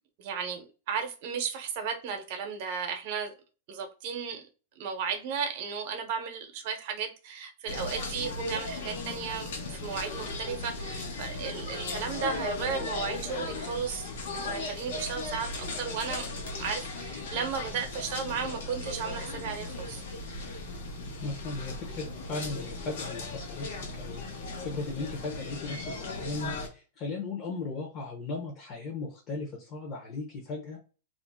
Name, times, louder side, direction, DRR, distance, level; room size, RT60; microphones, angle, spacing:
voice 1, 0.2-3.3 3.7-4.4 4.8-14.1 14.4-16.3 16.6-20.0, right 6 dB, 50° right, 0.8 m, -34 dB
sound 1, 7.7-26.7, left 3 dB, 75° left, 0.9 m, -37 dB
voice 2, 21.2-30.8, left 3 dB, 35° left, 0.8 m, -37 dB
2.5 x 2.0 x 3.5 m
hypercardioid pair, 135°, 0 cm